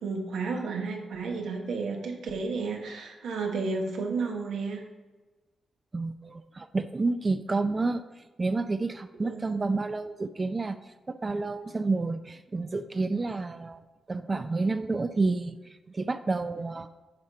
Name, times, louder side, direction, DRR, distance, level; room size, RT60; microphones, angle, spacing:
voice 1, 0.0-4.8 9.2-9.6, right 4 dB, 85° right, 2 dB, 1.3 m, -32 dB
voice 2, 5.9-8.0 8.4-10.8 11.1-13.8 14.1-15.6 15.9-16.9, right 3 dB, 30° right, 10 dB, 0.5 m, -29 dB
10.5 x 4.2 x 4.7 m, 1.2 s
cardioid pair, 80°, 0 cm